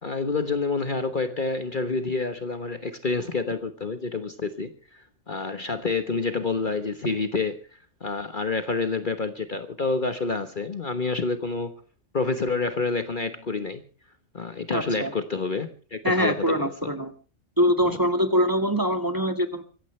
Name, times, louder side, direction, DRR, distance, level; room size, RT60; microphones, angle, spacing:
voice 1, 0.0-11.8 12.1-13.8 14.3-16.9 17.8-18.0, left 3 dB, 40° left, 1.3 m, -28 dB
voice 2, 14.7-15.1 16.0-17.1 17.6-19.6, equal, 15° right, 1.8 m, -23 dB
24.5 x 15.5 x 3.2 m
omnidirectional pair, 1.4 m